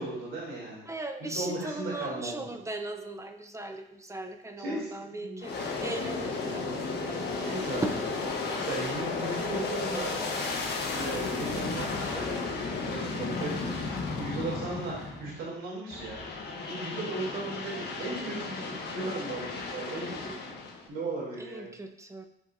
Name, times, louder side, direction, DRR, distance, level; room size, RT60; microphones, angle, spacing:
voice 1, 0.0-0.8 1.2-2.4 4.6-5.3 7.4-7.8 8.5-10.1 10.9-16.2 16.7-20.3 20.9-21.7, right 2 dB, 90° right, -5 dB, 3.0 m, -36 dB
voice 2, 0.8-7.2 7.8-8.0 16.8-17.1 21.4-22.2, right 2 dB, 15° right, 5 dB, 0.8 m, -38 dB
Aircraft, 5.4-15.4 15.9-20.9, left 4 dB, 55° left, 1.3 m, -34 dB
11.0 x 5.1 x 2.6 m, 0.79 s
cardioid pair, 90°, 20 cm